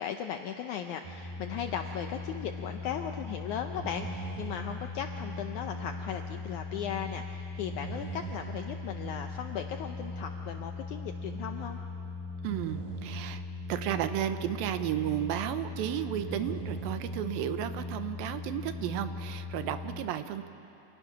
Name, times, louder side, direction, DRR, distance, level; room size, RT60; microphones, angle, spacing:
voice 1, 0.0-11.8, left 8 dB, 80° left, 5 dB, 1.8 m, -37 dB
sound 1, 1.0-19.9, left 2 dB, 60° right, 5.5 m, -39 dB
voice 2, 12.4-13.4 13.7-20.5, right 11 dB, 75° right, 10 dB, 2.5 m, -33 dB
28.5 x 27.0 x 6.0 m, 2.9 s
omnidirectional pair, 4.3 m